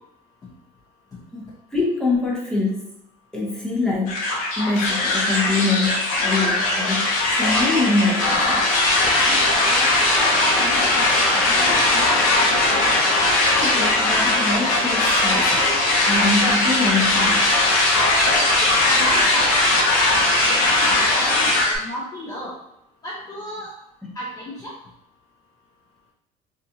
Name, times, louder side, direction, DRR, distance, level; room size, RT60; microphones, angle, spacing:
voice 1, 1.3-2.9 3.3-8.7 13.2-13.3 13.6-15.5 16.1-17.6 24.0-24.2, left 3 dB, 5° left, -4 dB, 0.8 m, -24 dB
sound 1, 4.1-21.8, left 2 dB, 70° left, 0.8 m, -19 dB
voice 2, 9.2-9.9 10.2-12.5 18.6-22.5 23.0-23.7 24.2-24.7, equal, 25° left, -5 dB, 0.5 m, -32 dB
3.9 x 2.4 x 2.8 m, 0.80 s
cardioid pair, 150°, 15 cm